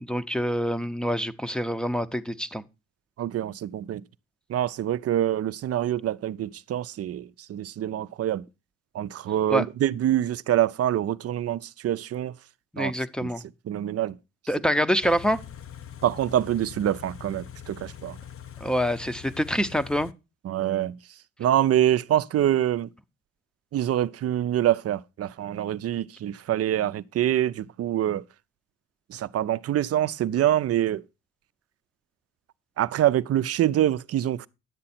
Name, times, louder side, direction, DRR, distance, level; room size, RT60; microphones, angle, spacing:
voice 1, 0.0-2.6 9.5-9.6 12.7-13.4 14.5-15.4 18.6-20.1, equal, 5° left, 0.7 m, -26 dB
voice 2, 3.2-4.0 4.5-8.4 8.9-12.3 12.8-12.9 13.2-13.3 13.7-14.2 16.0-18.2 20.4-21.0 21.4-22.9 23.7-28.2 29.1-31.0 32.8-34.5, right 12 dB, 50° right, 0.5 m, -25 dB
Car / Idling, 15.0-20.1, left 10 dB, 45° left, 0.7 m, -43 dB
10.5 x 7.6 x 4.3 m
cardioid pair, 90°, 30 cm